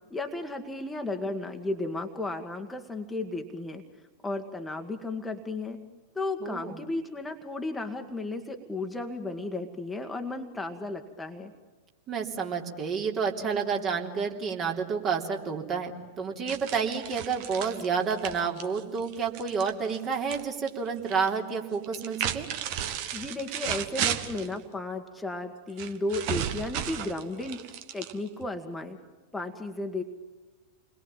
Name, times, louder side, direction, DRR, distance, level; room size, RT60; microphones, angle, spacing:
voice 1, 0.1-3.8 4.2-5.8 6.2-11.5 23.1-29.0 29.3-30.0, left 2 dB, 10° left, 4 dB, 1.9 m, -34 dB
voice 2, 6.4-6.8 12.1-15.9 16.2-22.5, right 6 dB, 30° right, 2 dB, 3.5 m, -30 dB
sound 1, 16.5-20.4 20.7-21.3 21.8-24.5 25.8-28.5, right 10 dB, 45° right, 1.8 m, -34 dB
29.0 x 21.5 x 9.0 m, 1.3 s
figure-of-eight pair, 90°, 0 cm